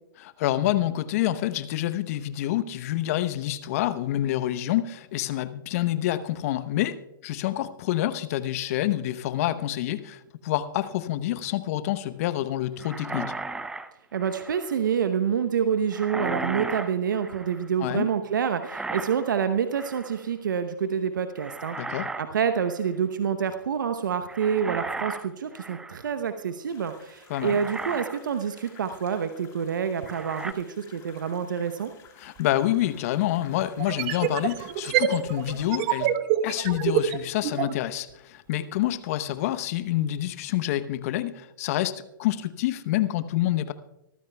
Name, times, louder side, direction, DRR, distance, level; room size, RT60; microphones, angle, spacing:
voice 1, 0.2-13.2 17.8-18.1 21.8-22.1 27.3-27.6 32.2-36.1 36.4-43.7, left 13 dB, 45° left, 13 dB, 0.8 m, -27 dB
sound 1, 12.8-14.8 15.9-17.7 18.6-19.4 19.7-20.2 21.4-22.3 22.6-22.8 24.3-26.1 26.8-26.9 27.3-28.2 28.6-28.8 30.1-30.5, right 3 dB, 5° right, 0.6 m, -36 dB
voice 2, 14.1-21.9 22.2-31.9, right 7 dB, 65° right, 8 dB, 0.9 m, -27 dB
sound 2, 26.7-36.1, left 8 dB, 25° left, 3.3 m, -54 dB
sound 3, 32.4-32.5 33.8-37.8, right 10 dB, 35° right, 1.0 m, -26 dB
24.5 x 14.5 x 2.3 m, 0.90 s
figure-of-eight pair, 120°, 11 cm